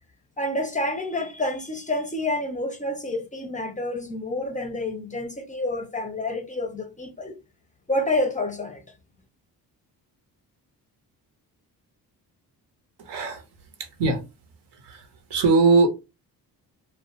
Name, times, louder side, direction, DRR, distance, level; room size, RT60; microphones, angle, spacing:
voice 1, 0.4-7.3 7.9-8.8, left 1 dB, 20° left, 0.4 m, -28 dB
voice 2, 13.0-13.4 13.8-14.2 14.7-15.9, right 4 dB, 75° right, 0.8 m, -21 dB
2.3 x 2.1 x 2.8 m
cardioid pair, 85°, 40 cm